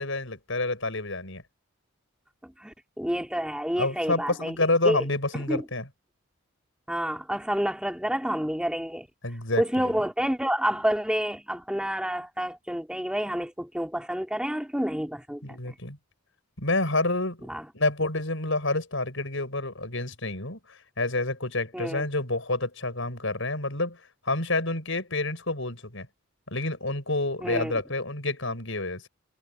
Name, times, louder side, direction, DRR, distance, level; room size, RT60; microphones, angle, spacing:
voice 1, 0.0-1.4 3.8-5.9 9.2-9.9 15.4-16.0 16.6-17.4 17.7-24.0 24.2-26.1 26.5-29.1, left 2 dB, 65° left, 7.3 m, -28 dB
voice 2, 2.4-4.6 4.8-5.0 5.3-5.6 6.9-9.1 9.6-15.7 17.5-17.7 21.7-22.0 27.4-27.7, equal, 5° right, 2.6 m, -29 dB
head